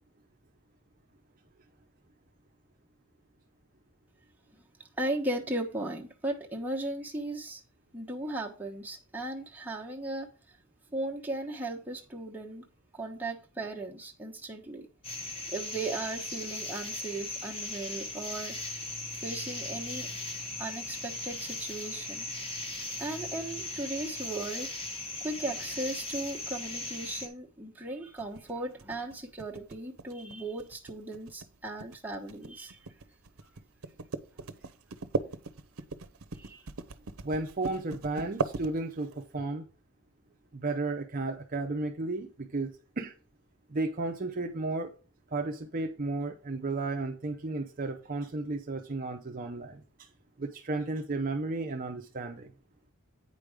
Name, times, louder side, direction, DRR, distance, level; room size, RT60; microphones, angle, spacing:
voice 1, 5.0-7.6 7.9-10.6 10.9-12.7 12.9-14.9 15.5-18.6 19.2-20.1 20.6-22.2 23.0-24.7 25.2-32.8 36.3-36.7, right 2 dB, 10° right, 1.2 m, -37 dB
sound 1, 15.0-27.3, left 2 dB, 25° left, 1.5 m, -38 dB
sound 2, 28.2-39.2, right 3 dB, 70° right, 0.7 m, -38 dB
voice 2, 37.2-39.7 40.5-43.1 43.7-44.9 45.3-50.1 50.4-52.5, right 2 dB, 40° right, 0.6 m, -33 dB
9.0 x 5.2 x 4.9 m
head